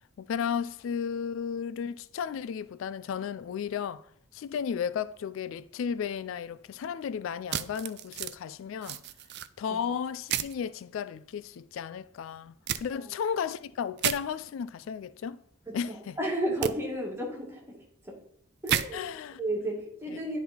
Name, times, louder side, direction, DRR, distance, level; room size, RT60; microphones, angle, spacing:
voice 1, 0.2-4.1 4.3-9.0 9.6-15.4 15.7-16.2 18.9-19.4, left 7 dB, 70° left, 0.3 m, -34 dB
sound 1, 7.5-8.4 8.8-9.5 10.3-10.6 12.7-12.8 14.0-14.2 16.6-16.7 18.7-18.9, right 10 dB, 55° right, 0.4 m, -30 dB
voice 2, 16.2-17.6 18.6-19.1 19.4-20.4, right 1 dB, 10° right, 2.0 m, -32 dB
10.0 x 3.9 x 4.3 m
head